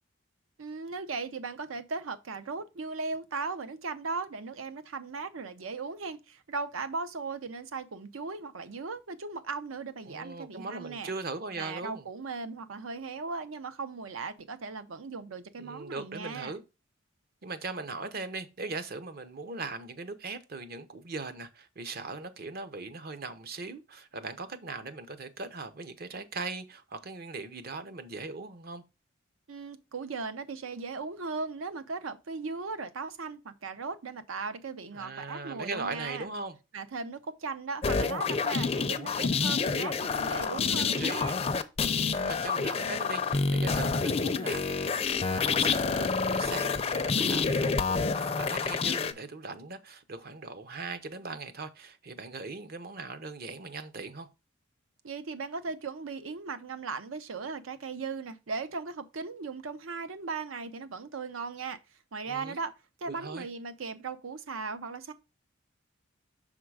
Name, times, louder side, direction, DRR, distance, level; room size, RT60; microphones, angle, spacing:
voice 1, 0.6-11.1 11.5-16.6 29.5-36.3 36.7-41.4 55.0-61.8 62.1-62.7 63.0-65.1, right 4 dB, 85° right, 0.7 m, -37 dB
voice 2, 10.1-12.1 15.6-16.6 17.4-28.8 34.9-36.6 40.8-41.2 42.2-44.7 45.1-54.3 62.3-62.6 63.1-63.5, right 3 dB, 50° right, 0.7 m, -39 dB
sound 1, 37.8-49.1, left 5 dB, 30° left, 0.4 m, -28 dB
6.3 x 3.7 x 4.7 m
head